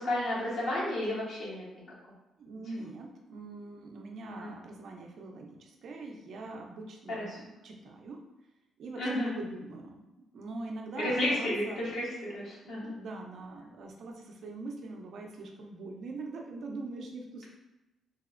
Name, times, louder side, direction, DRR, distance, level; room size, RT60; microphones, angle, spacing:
voice 1, 0.0-1.6 4.3-4.5 7.2-7.4 9.0-9.3 11.0-12.1 12.3-12.9, left 1 dB, 75° left, -7 dB, 1.0 m, -32 dB
voice 2, 2.4-8.2 8.8-10.0 10.3-11.9 12.6-17.5, right 3 dB, 65° right, 1 dB, 0.5 m, -42 dB
4.0 x 2.0 x 2.4 m, 0.99 s
cardioid pair, 90°, 0 cm